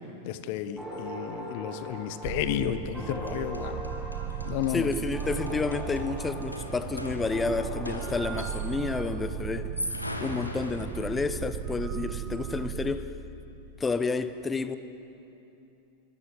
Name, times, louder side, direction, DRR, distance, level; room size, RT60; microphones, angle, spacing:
voice 1, 0.2-3.8 4.4-4.9, left 11 dB, 45° left, 1.3 m, -32 dB
sound 1, 0.8-9.5, equal, 5° right, 6.3 m, -41 dB
sound 2, 2.2-12.9, right 10 dB, 35° right, 1.1 m, -36 dB
sound 3, 2.9-3.0 3.3-8.9 9.6-11.4, left 1 dB, 85° left, 2.3 m, -40 dB
voice 2, 4.7-13.1 13.8-14.8, left 4 dB, 15° left, 1.1 m, -30 dB
26.5 x 24.0 x 7.8 m
figure-of-eight pair, 90°, 0 cm